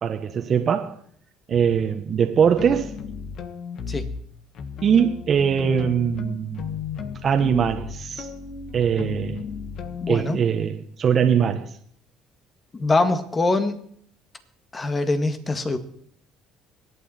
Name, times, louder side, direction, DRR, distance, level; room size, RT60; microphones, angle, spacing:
voice 1, 0.0-0.9 1.5-2.9 4.8-6.7 7.2-8.3 8.7-9.4 10.1-11.7, right 7 dB, 45° right, 5 dB, 1.3 m, -21 dB
sound 1, 1.5-1.8 2.4-4.2 4.5-10.2, left 6 dB, 60° left, 1.5 m, -35 dB
voice 2, 10.0-10.4 12.7-13.8 14.7-15.8, left 2 dB, 25° left, 9 dB, 1.8 m, -23 dB
22.0 x 9.0 x 4.4 m, 0.62 s
supercardioid pair, 80°, 0 cm